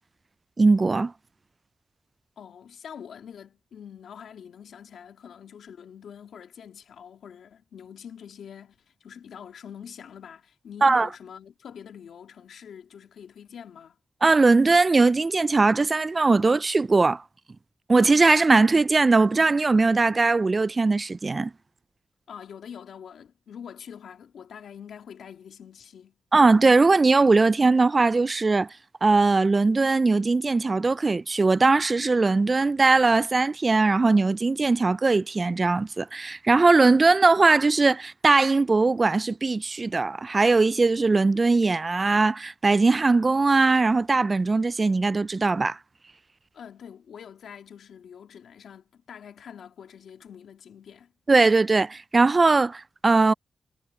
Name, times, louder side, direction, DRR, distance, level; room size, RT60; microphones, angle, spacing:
voice 1, 0.6-1.1 10.8-11.1 14.2-17.2 17.9-21.5 26.3-28.7 29.0-45.8 51.3-53.3, right 3 dB, 40° right, 0.3 m, -20 dB
voice 2, 2.4-14.0 22.3-26.1 46.5-51.1, left 8 dB, 85° left, 2.2 m, -45 dB
cardioid pair, 50°, 0 cm